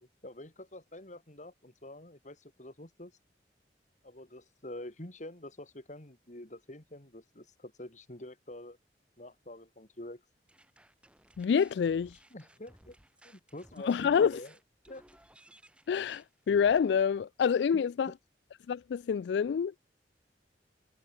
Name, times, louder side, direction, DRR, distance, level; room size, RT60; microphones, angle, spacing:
voice 1, 0.2-3.1 4.0-8.8 9.2-10.2 12.3-13.0 13.2-14.5 14.9-15.0 17.7-18.2, left 1 dB, 45° left, 2.9 m, -47 dB
sound 1, 10.5-17.0, right 1 dB, 5° right, 2.9 m, -60 dB
voice 2, 11.4-12.2 13.8-14.4 15.9-18.1 18.7-19.9, left 7 dB, 75° left, 0.3 m, -27 dB
head